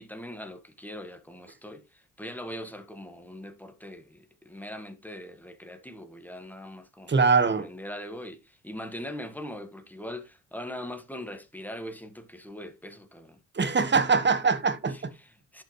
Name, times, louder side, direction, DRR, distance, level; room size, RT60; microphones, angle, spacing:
voice 1, 0.0-7.1 7.4-13.4 14.9-15.6, left 1 dB, 5° left, 1.8 m, -41 dB
voice 2, 7.1-7.7 13.5-14.9, right 5 dB, 35° right, 1.6 m, -22 dB
11.0 x 5.8 x 3.3 m
cardioid pair, 85°, 31 cm